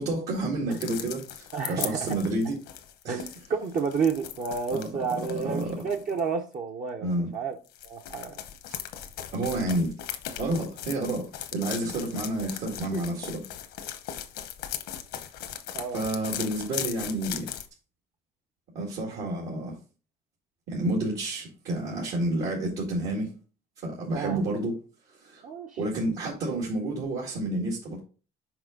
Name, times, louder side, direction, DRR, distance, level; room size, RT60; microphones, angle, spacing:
voice 1, 0.0-2.6 3.0-3.2 4.7-4.9 5.3-5.8 7.0-7.3 9.3-9.9 10.4-13.4 15.9-17.5 18.7-19.8 20.7-23.3 23.8-24.8 25.2-25.4 25.8-28.0, right 1 dB, 75° right, 2.1 m, -30 dB
sound 1, 0.7-6.2 7.7-17.7, left 10 dB, 80° left, 1.0 m, -38 dB
voice 2, 1.5-2.1 3.1-7.1 7.3-7.6 7.8-8.4 12.9-13.0 15.7-16.0 24.1-24.5 25.4-25.8, right 5 dB, 50° right, 0.8 m, -30 dB
5.9 x 5.3 x 3.8 m
cardioid pair, 110°, 17 cm